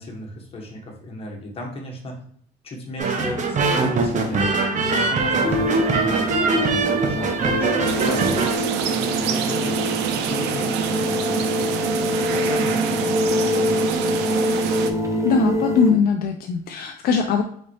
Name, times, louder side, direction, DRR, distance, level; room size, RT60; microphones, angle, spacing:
voice 1, 0.0-2.2 2.6-11.2 11.5-13.0 13.3-13.9, left 1 dB, 35° left, 0 dB, 1.4 m, -36 dB
sound 1, 3.0-8.6, right 3 dB, 45° right, 0.8 m, -22 dB
sound 2, 5.4-15.9, equal, 20° right, 0.8 m, -24 dB
sound 3, 7.8-14.9, right 7 dB, 85° right, 0.5 m, -26 dB
voice 2, 15.2-17.4, left 5 dB, 65° left, 4 dB, 0.5 m, -20 dB
4.1 x 3.9 x 3.2 m, 0.63 s
cardioid pair, 110°, 17 cm